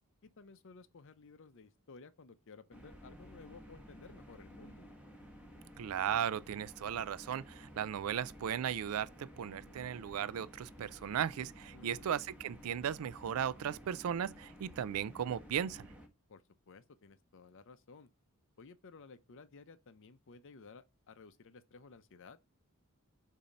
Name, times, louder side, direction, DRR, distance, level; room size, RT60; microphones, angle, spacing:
voice 1, 0.2-4.9 11.7-12.1 16.3-18.1 18.6-22.4, left 4 dB, 60° left, 0.6 m, -56 dB
sound 1, 2.7-16.1, equal, 5° right, 1.3 m, -54 dB
voice 2, 5.8-15.9, right 9 dB, 70° right, 0.4 m, -36 dB
6.9 x 2.8 x 5.2 m
head